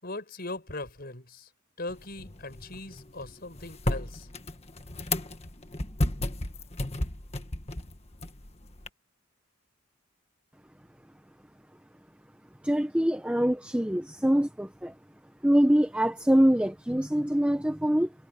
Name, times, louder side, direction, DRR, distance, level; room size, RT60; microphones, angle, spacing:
voice 1, 0.0-1.5 1.8-4.3, left 2 dB, 45° left, 5.6 m, -39 dB
sound 1, 1.9-8.9, left 2 dB, 30° left, 1.5 m, -34 dB
voice 2, 12.6-14.9 15.4-18.1, equal, 5° right, 0.8 m, -24 dB
head